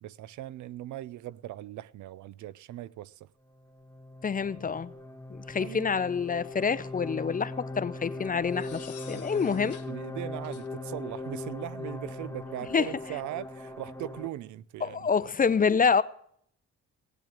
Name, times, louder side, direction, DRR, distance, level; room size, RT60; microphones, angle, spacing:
voice 1, 0.0-3.3 5.6-5.9 9.1-15.1, right 14 dB, 75° right, 0.6 m, -40 dB
sound 1, 3.5-14.3, left 2 dB, 10° left, 1.7 m, -40 dB
voice 2, 4.2-4.9 5.3-9.8 12.7-12.9 14.8-16.0, left 6 dB, 30° left, 0.6 m, -27 dB
sound 2, 6.2-6.9 8.5-9.9 10.4-10.7, left 8 dB, 50° left, 1.7 m, -51 dB
17.5 x 7.7 x 7.5 m
cardioid pair, 90°, 30 cm